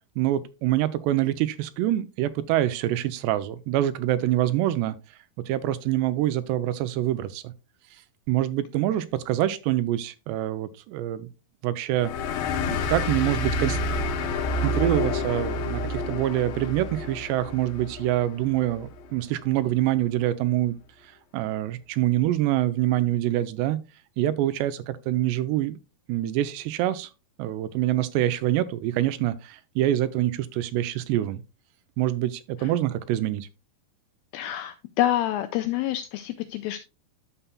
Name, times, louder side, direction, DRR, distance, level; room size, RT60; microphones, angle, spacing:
voice 1, 0.2-5.0 5.5-7.5 8.3-11.3 11.6-12.1 12.7-13.8 14.6-20.8 21.3-23.8 24.2-25.8 26.1-27.1 27.4-31.4 32.0-33.5, right 13 dB, 85° right, 2.7 m, -25 dB
sound 1, 12.0-19.1, left 2 dB, 70° left, 2.4 m, -29 dB
voice 2, 34.3-36.8, left 13 dB, 90° left, 2.1 m, -27 dB
11.0 x 6.9 x 2.2 m
omnidirectional pair, 4.8 m